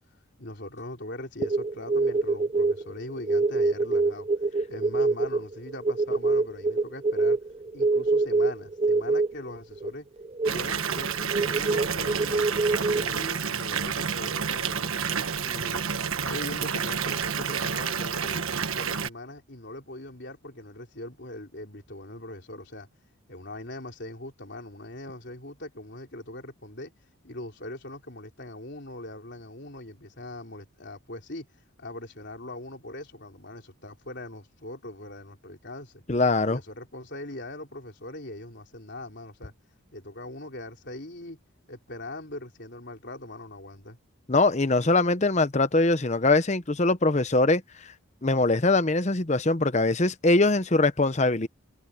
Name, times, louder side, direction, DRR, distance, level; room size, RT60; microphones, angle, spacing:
voice 1, 0.4-7.4 7.7-10.1 10.5-12.6 12.9-15.9 16.2-18.4 18.7-22.9 23.3-26.9 27.2-31.5 31.8-36.0 36.5-39.5 39.9-41.4 41.7-44.0, left 1 dB, 50° left, 4.2 m, -41 dB
sound 1, 1.4-9.9 10.2-13.2, right 3 dB, 25° right, 0.4 m, -25 dB
Water tap faucet / Bathtub (filling or washing) / Fill (with liquid), 10.4-19.1, right 6 dB, 75° right, 1.4 m, -29 dB
voice 2, 36.1-36.6 44.3-47.6 48.2-51.5, left 2 dB, 30° left, 0.8 m, -22 dB
head